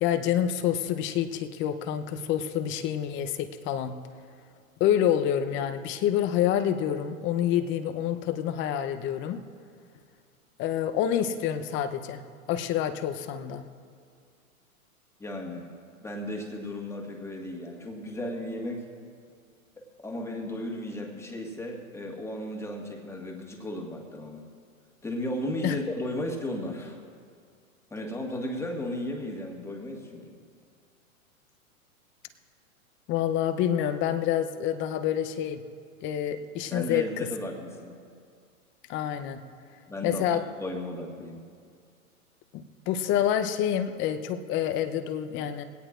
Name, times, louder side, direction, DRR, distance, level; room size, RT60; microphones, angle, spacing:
voice 1, 0.0-4.0 4.8-9.4 10.6-12.2 12.5-13.6 25.6-25.8 33.1-35.6 36.0-37.3 38.9-39.4 40.0-40.4 42.5-45.6, left 10 dB, 30° left, 9 dB, 0.7 m, -27 dB
voice 2, 15.2-15.7 16.0-18.9 19.8-24.4 25.0-27.0 27.9-30.4 36.7-38.0 39.9-40.3 40.6-41.4, left 1 dB, 5° left, 1 dB, 1.7 m, -35 dB
20.5 x 17.5 x 2.5 m, 2.2 s
hypercardioid pair, 115°, 42 cm